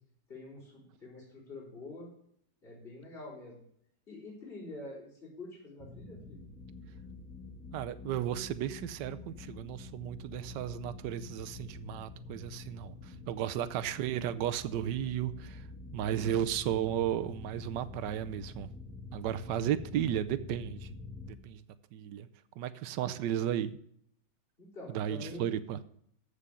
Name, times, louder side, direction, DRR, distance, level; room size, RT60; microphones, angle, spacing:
voice 1, 0.3-2.1 2.6-3.6 4.1-6.5 13.5-13.6 24.6-25.5, left 2 dB, 30° left, -8 dB, 4.4 m, -46 dB
sound 1, 5.8-21.3, left 3 dB, 5° left, 1.9 m, -47 dB
voice 2, 7.7-15.7 15.9-18.7 19.1-20.9 21.4-21.6 21.9-22.3 22.6-23.8 24.9-25.8, right 11 dB, 85° right, 12 dB, 1.3 m, -34 dB
14.5 x 5.0 x 6.8 m, 0.67 s
omnidirectional pair, 1.9 m